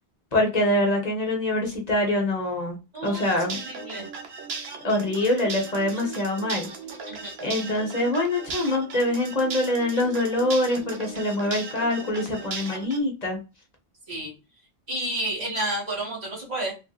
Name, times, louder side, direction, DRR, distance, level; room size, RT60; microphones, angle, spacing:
voice 1, 0.3-2.8 3.0-3.6 4.8-6.7 7.4-13.4, left 1 dB, 40° left, 1 dB, 0.9 m, -24 dB
voice 2, 2.9-4.1 7.1-7.3 14.1-14.3 14.9-16.7, right 1 dB, 40° right, -5 dB, 1.9 m, -31 dB
sound 1, 3.0-13.0, right 4 dB, 70° right, 0.9 m, -37 dB
3.3 x 2.5 x 2.3 m, 0.27 s
omnidirectional pair, 1.1 m